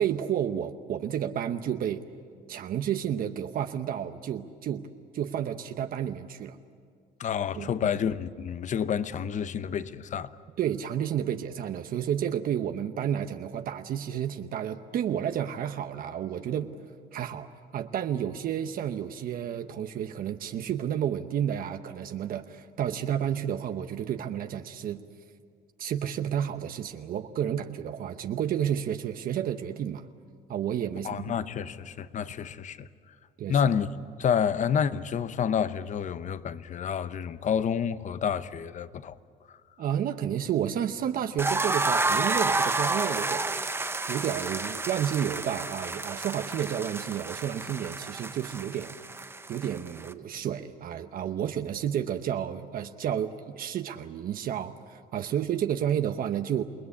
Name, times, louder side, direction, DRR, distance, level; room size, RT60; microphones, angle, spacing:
voice 1, 0.0-2.0 2.5-4.9 5.1-6.6 7.6-7.7 10.6-16.8 17.1-25.0 25.8-30.0 30.5-31.4 33.4-33.6 39.8-43.5 44.1-48.9 49.5-56.6, right 9 dB, 60° right, 0.9 m, -31 dB
voice 2, 7.2-10.3 31.0-32.9 33.5-33.9 34.2-39.2, left 7 dB, 45° left, 0.9 m, -29 dB
sound 1, 41.4-50.1, right 3 dB, 15° right, 0.9 m, -30 dB
28.0 x 19.5 x 8.5 m
cardioid pair, 110°, 17 cm